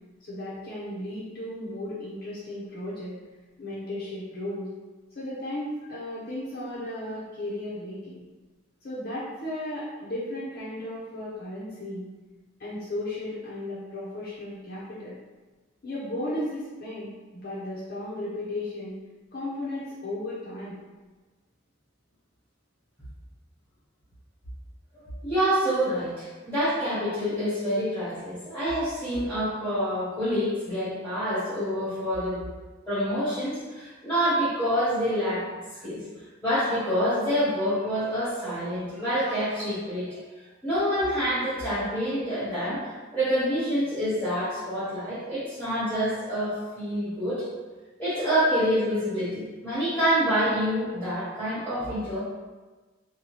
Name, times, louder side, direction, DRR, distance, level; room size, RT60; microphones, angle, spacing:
voice 1, 0.2-3.1 3.6-4.7 5.1-8.2 8.8-12.1 12.6-15.1 15.8-19.0 19.3-20.8, left 1 dB, 50° left, -9 dB, 0.6 m, -35 dB
voice 2, 25.2-32.4 32.9-35.4 35.8-36.0 36.4-40.2 40.6-47.4 48.0-52.2, equal, 10° left, -13 dB, 0.9 m, -27 dB
2.7 x 2.2 x 3.1 m, 1.3 s
head